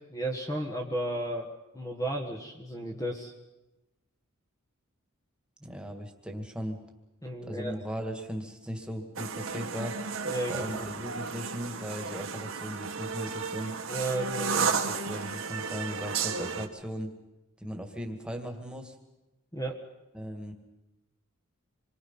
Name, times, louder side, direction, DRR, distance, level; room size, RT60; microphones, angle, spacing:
voice 1, 0.1-3.3 7.2-7.8 10.2-10.9 13.9-14.7 19.5-19.8, right 1 dB, 15° left, 1 dB, 1.6 m, -34 dB
voice 2, 5.6-6.8 7.4-10.0 10.5-13.8 14.9-17.1 17.6-19.0 20.1-20.5, equal, 5° right, 3 dB, 2.2 m, -37 dB
sound 1, 9.2-16.7, right 5 dB, 70° right, 1.9 m, -33 dB
27.0 x 23.0 x 5.8 m, 1.0 s
head